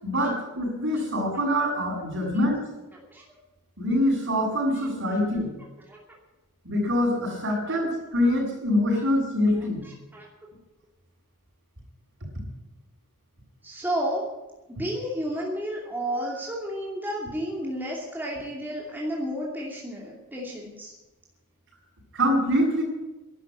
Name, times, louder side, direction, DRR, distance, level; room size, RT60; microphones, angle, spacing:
voice 1, 0.0-2.7 3.8-5.5 6.6-9.8 16.2-16.4 22.1-22.8, left 1 dB, 60° right, -2 dB, 6.7 m, -24 dB
voice 2, 4.7-5.2 5.9-6.0 7.7-7.8 8.9-9.0 9.8-10.3 13.6-14.3 14.7-20.9, equal, 10° right, -3 dB, 2.7 m, -32 dB
12.0 x 11.5 x 9.8 m, 1.1 s
head